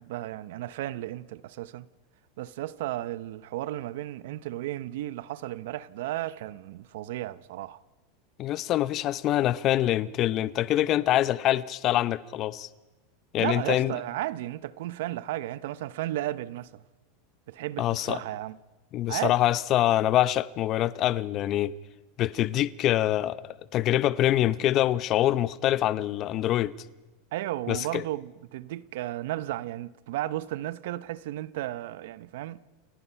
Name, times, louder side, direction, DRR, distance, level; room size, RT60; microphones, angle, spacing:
voice 1, 0.0-1.9 2.4-7.8 13.4-16.7 17.5-18.6 19.1-19.4 27.3-32.6, right 15 dB, 70° right, 0.8 m, -34 dB
voice 2, 8.4-12.7 13.3-14.0 17.8-18.2 18.9-21.7 22.2-26.7 27.7-28.0, left 13 dB, 35° left, 0.7 m, -25 dB
29.0 x 15.5 x 5.8 m
supercardioid pair, 145°, 0 cm